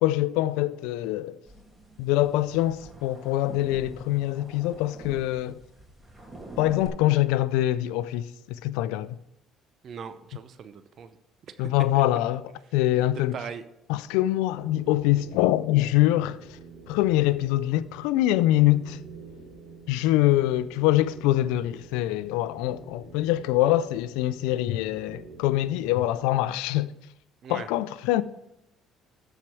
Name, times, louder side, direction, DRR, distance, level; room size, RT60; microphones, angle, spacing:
voice 1, 0.0-1.4 2.0-5.6 6.6-9.2 11.6-13.4 13.9-16.6 16.9-19.0 19.9-26.9 27.5-28.2, left 15 dB, 90° left, 0.3 m, -24 dB
sound 1, 1.5-6.9, right 1 dB, 15° right, 2.5 m, -46 dB
voice 2, 9.8-11.2 11.6-11.7 13.3-13.6 27.4-27.7, right 7 dB, 55° right, 0.6 m, -39 dB
sound 2, 14.5-26.3, right 3 dB, 85° right, 3.2 m, -47 dB
13.0 x 4.5 x 4.7 m
supercardioid pair, 85°, 0 cm